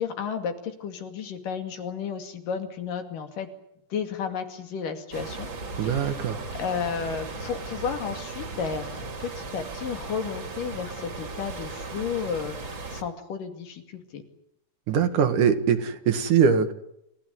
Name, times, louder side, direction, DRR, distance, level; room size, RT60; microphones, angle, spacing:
voice 1, 0.0-3.5 3.9-5.5 5.8-6.2 6.6-14.2, left 6 dB, 75° left, 6 dB, 4.0 m, -33 dB
sound 1, 5.1-13.0, right 3 dB, 40° right, 3.1 m, -37 dB
voice 2, 5.8-6.4 14.9-16.7, right 7 dB, 70° right, 8 dB, 3.2 m, -22 dB
29.0 x 15.5 x 9.4 m, 0.79 s
omnidirectional pair, 3.8 m